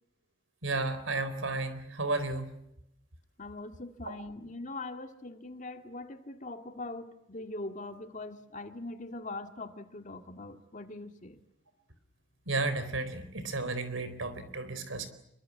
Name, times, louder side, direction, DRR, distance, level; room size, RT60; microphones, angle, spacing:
voice 1, 0.6-2.5 12.5-15.1, right 3 dB, 85° right, 12 dB, 4.1 m, -33 dB
voice 2, 3.4-11.4, left 2 dB, 40° left, 7 dB, 2.1 m, -42 dB
27.0 x 23.5 x 8.5 m, 0.80 s
head